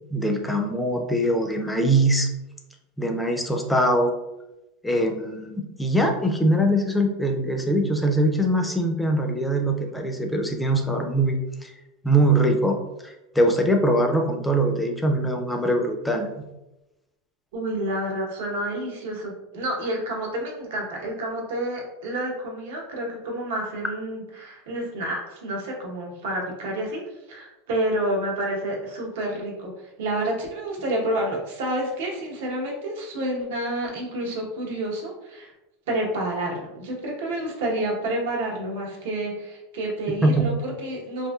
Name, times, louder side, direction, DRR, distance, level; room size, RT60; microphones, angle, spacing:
voice 1, 0.1-2.3 3.0-4.1 4.8-11.7 12.0-12.8 13.0-16.3 40.2-40.4, right 1 dB, 5° left, 3 dB, 0.3 m, -22 dB
voice 2, 17.5-27.0 27.3-35.5 35.9-41.3, right 1 dB, 80° right, -1 dB, 0.9 m, -29 dB
2.9 x 2.6 x 2.3 m, 0.97 s
supercardioid pair, 150°, 0 cm